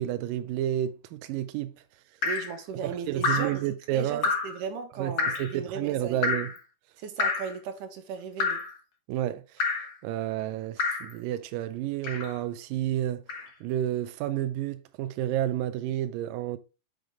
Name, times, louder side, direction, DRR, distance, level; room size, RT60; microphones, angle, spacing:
voice 1, 0.0-1.8 2.8-4.3 5.0-6.5 9.1-9.7 10.0-13.2 13.6-16.6, right 12 dB, 85° right, 1.9 m, -30 dB
Drip, 2.2-2.5 3.2-3.6 4.2-4.6 5.2-5.5 6.2-6.6 7.2-7.6 8.4-8.7 9.6-9.9 10.8-11.1 12.0-12.4 13.3-13.5, left 4 dB, 90° left, 0.9 m, -28 dB
voice 2, 2.2-3.6 3.9-6.3 7.0-8.6, right 6 dB, 65° right, 2.5 m, -37 dB
7.8 x 5.2 x 3.4 m
omnidirectional pair, 4.5 m